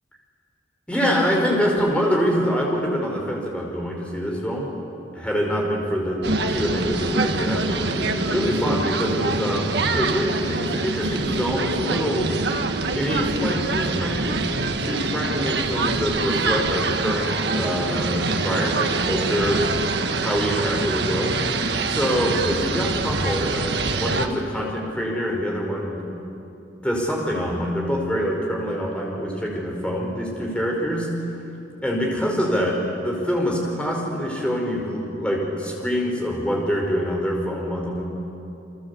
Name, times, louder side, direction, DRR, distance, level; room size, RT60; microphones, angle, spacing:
voice 1, 0.9-4.7 5.1-12.3 12.9-14.4 14.8-19.6 20.2-21.4 21.9-26.1 26.8-31.1 31.8-38.0, equal, 5° left, -1 dB, 5.1 m, -25 dB
sound 1, 6.2-24.3, right 3 dB, 65° right, 1.6 m, -25 dB
29.0 x 24.0 x 8.5 m, 2.8 s
head